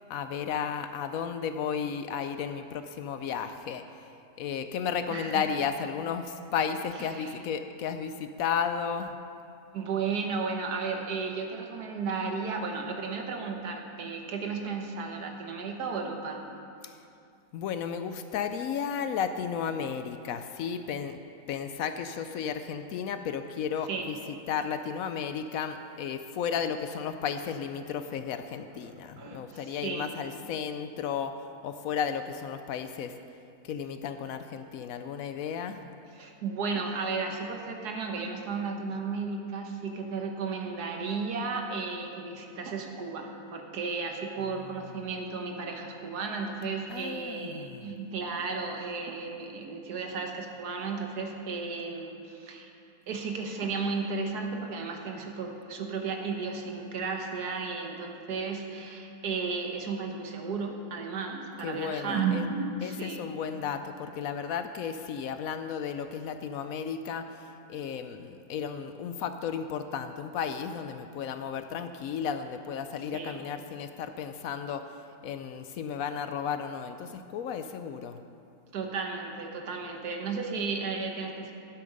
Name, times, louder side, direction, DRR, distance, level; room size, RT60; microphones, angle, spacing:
voice 1, 0.1-9.2 16.8-17.0 17.5-21.2 21.5-33.2 33.6-35.9 44.4-45.1 46.9-48.0 61.6-62.5 62.8-78.2, left 7 dB, 70° left, 9 dB, 0.9 m, -34 dB
voice 2, 5.1-5.4 7.2-7.3 9.7-16.4 23.9-24.1 29.2-30.1 36.2-52.7 53.1-63.2 73.1-73.4 78.7-81.5, right 4 dB, 80° right, 3 dB, 1.7 m, -34 dB
12.0 x 8.5 x 5.3 m, 2.5 s
omnidirectional pair, 1.7 m